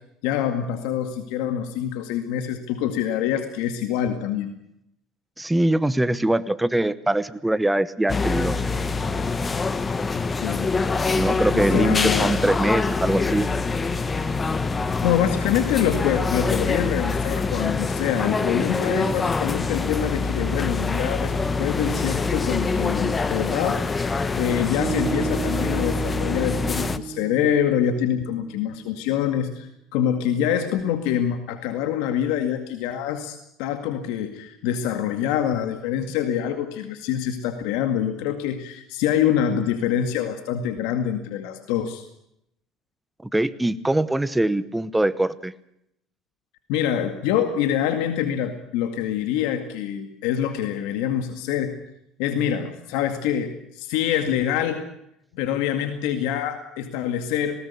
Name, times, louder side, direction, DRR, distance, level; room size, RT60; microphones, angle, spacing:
voice 1, 0.2-4.5 10.4-10.7 11.5-12.4 15.0-21.3 21.6-23.8 24.4-42.1 46.7-51.7 52.2-54.9 55.4-57.6, left 9 dB, 85° left, 7 dB, 2.1 m, -25 dB
voice 2, 5.4-8.6 11.1-13.5 43.3-45.5, right 1 dB, 5° right, 15 dB, 1.0 m, -22 dB
sound 1, 8.1-27.0, left 4 dB, 20° left, 1.2 m, -25 dB
sound 2, 24.8-29.0, right 6 dB, 35° right, 3.1 m, -33 dB
20.0 x 18.5 x 8.4 m, 0.77 s
cardioid pair, 125°, 0 cm